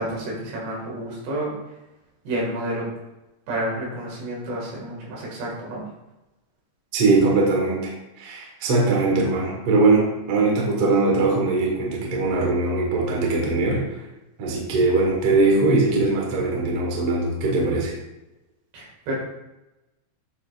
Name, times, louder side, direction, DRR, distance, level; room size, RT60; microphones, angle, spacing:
voice 1, 0.0-1.6 2.3-2.9 3.5-5.9 18.7-19.1, right 1 dB, 80° right, -4 dB, 4.3 m, -30 dB
voice 2, 6.9-7.9 8.2-13.8 14.4-17.9, right 3 dB, 55° right, -2 dB, 1.7 m, -21 dB
10.0 x 5.1 x 2.5 m, 0.98 s
omnidirectional pair, 4.8 m